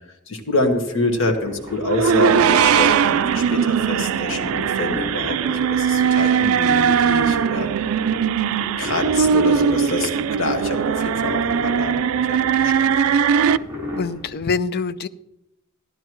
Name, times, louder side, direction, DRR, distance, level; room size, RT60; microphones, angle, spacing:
voice 1, 0.3-7.7 8.8-13.1, left 2 dB, 65° left, 1.6 m, -26 dB
sound 1, 0.6-14.3, left 1 dB, 15° right, 2.9 m, -35 dB
sound 2, 1.8-13.6, right 7 dB, 85° right, 0.4 m, -19 dB
voice 2, 14.0-15.1, left 5 dB, 50° left, 0.5 m, -24 dB
13.5 x 11.5 x 3.1 m
head